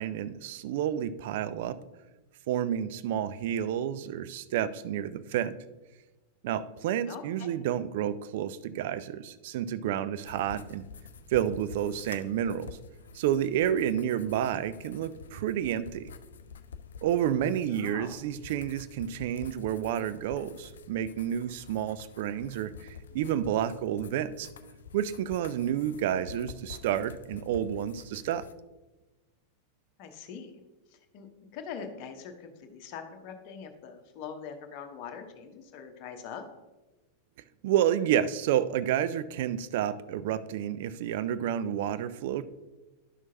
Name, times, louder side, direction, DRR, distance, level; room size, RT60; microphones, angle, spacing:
voice 1, 0.0-1.8 2.5-5.6 6.4-10.8 11.3-12.8 13.1-16.1 17.0-24.5 24.9-28.5 37.6-42.4, right 10 dB, 50° right, 14 dB, 0.4 m, -30 dB
voice 2, 7.1-7.5 17.7-18.2 30.0-30.5 30.9-36.4, left 7 dB, 40° left, 5 dB, 1.0 m, -43 dB
sound 1, 10.2-28.5, left 6 dB, 65° left, 0.4 m, -48 dB
11.0 x 6.1 x 2.8 m, 1.1 s
figure-of-eight pair, 90°, 0 cm